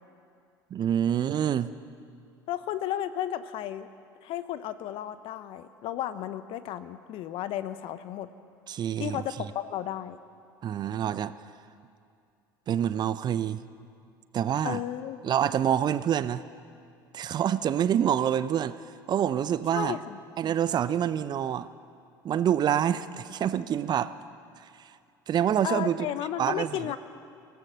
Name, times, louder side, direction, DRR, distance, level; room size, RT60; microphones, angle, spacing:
voice 1, 0.7-1.7 8.7-9.2 10.6-11.3 12.7-13.6 14.3-14.8 15.2-16.4 17.1-18.8 19.1-20.0 20.4-21.7 22.2-24.1 24.8-24.9 25.3-26.1 26.4-26.9, right 9 dB, 35° right, 14 dB, 0.7 m, -26 dB
voice 2, 2.5-3.9 4.2-8.3 9.0-10.2 14.6-15.2 19.7-20.2 25.6-27.0, left 12 dB, 50° left, 13 dB, 1.0 m, -33 dB
24.0 x 17.5 x 6.4 m, 2.3 s
figure-of-eight pair, 70°, 12 cm